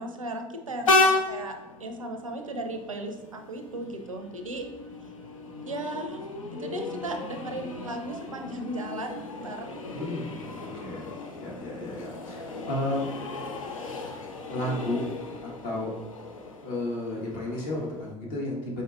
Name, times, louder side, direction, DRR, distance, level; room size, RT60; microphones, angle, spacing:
voice 1, 0.0-1.5 1.8-4.7 5.7-6.2 6.6-9.8, right 1 dB, 85° right, 5 dB, 0.5 m, -36 dB
Train, 0.8-18.1, left 3 dB, 80° left, 0.5 m, -33 dB
voice 2, 9.9-11.1 11.4-13.1 14.5-15.0 15.6-15.9 16.6-18.8, left 1 dB, 55° left, -4 dB, 1.5 m, -32 dB
5.3 x 4.0 x 2.5 m, 1.0 s
figure-of-eight pair, 65°, 17 cm